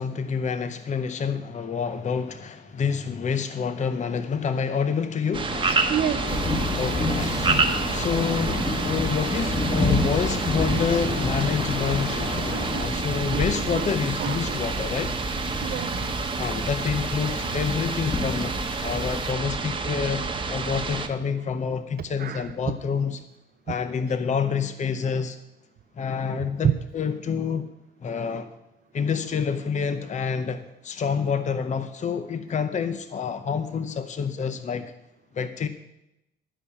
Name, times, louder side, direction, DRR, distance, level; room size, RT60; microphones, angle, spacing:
voice 1, 0.0-5.7 6.8-7.3 7.9-12.2 12.8-15.1 16.4-23.2 23.7-25.4 26.0-27.7 28.0-28.5 28.9-34.9 35.3-35.7, left 6 dB, 35° left, 11 dB, 0.7 m, -28 dB
sound 1, 5.3-21.1, right 3 dB, 25° right, 1.1 m, -29 dB
sound 2, 5.5-12.8, left 3 dB, 75° left, 2.1 m, -34 dB
voice 2, 5.9-6.4 12.5-14.6 15.5-16.3 22.2-22.7 23.7-23.8 26.6-26.8, right 10 dB, 50° right, 6 dB, 0.6 m, -30 dB
sound 3, 6.3-19.3, left 2 dB, 15° left, 1.5 m, -30 dB
12.0 x 5.4 x 8.5 m, 0.90 s
cardioid pair, 90°, 21 cm